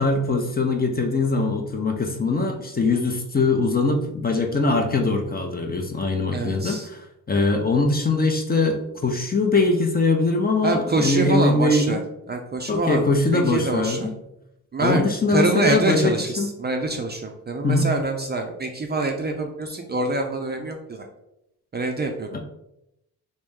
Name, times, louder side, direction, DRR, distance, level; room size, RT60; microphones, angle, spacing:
voice 1, 0.0-7.0 7.3-12.0 12.7-14.1 14.8-16.5 17.6-17.9 22.3-22.4, left 3 dB, 25° left, 4 dB, 0.5 m, -22 dB
voice 2, 6.3-6.9 10.6-12.0 12.3-13.1 13.3-14.1 14.7-21.1 21.7-22.4, right 2 dB, 25° right, 3 dB, 0.4 m, -25 dB
3.1 x 2.6 x 3.6 m, 0.84 s
cardioid pair, 75°, 39 cm